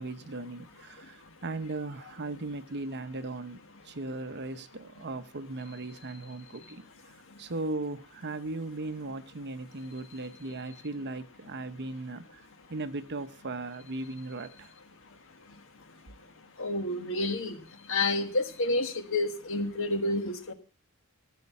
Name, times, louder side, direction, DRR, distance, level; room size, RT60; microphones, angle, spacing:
voice 1, 0.0-3.6 3.8-14.7, right 2 dB, 50° right, 0.9 m, -38 dB
voice 2, 16.6-17.5 17.9-20.5, left 2 dB, 60° left, 1.6 m, -29 dB
15.0 x 6.6 x 7.2 m
head